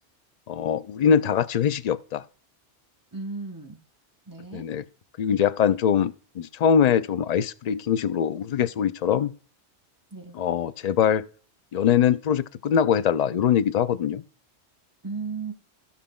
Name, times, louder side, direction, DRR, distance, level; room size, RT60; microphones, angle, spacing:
voice 1, 0.5-2.2 4.5-4.8 5.2-9.3 10.3-11.3 11.7-14.2, left 8 dB, 65° left, 0.4 m, -23 dB
voice 2, 3.1-3.8 4.3-4.7 10.1-10.4 15.0-15.5, right 4 dB, 20° right, 1.2 m, -35 dB
16.5 x 5.8 x 2.3 m
omnidirectional pair, 1.2 m